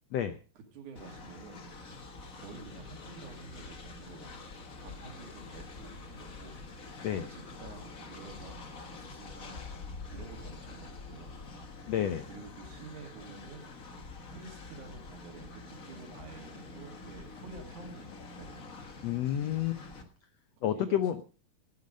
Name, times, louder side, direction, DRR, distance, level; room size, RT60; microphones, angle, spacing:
voice 1, 0.6-1.7 2.3-4.3 4.8-6.6 7.1-9.7 10.1-11.4 12.3-13.7 14.3-18.1 18.4-18.7 20.6-21.2, right 4 dB, 60° right, 3 dB, 3.8 m, -50 dB
Train, 1.0-20.0, left 3 dB, 60° left, 0.8 m, -46 dB
voice 2, 11.9-12.2 19.0-19.8 20.6-21.2, left 10 dB, 85° left, 11 dB, 1.4 m, -30 dB
17.5 x 9.6 x 5.2 m, 0.37 s
omnidirectional pair, 4.0 m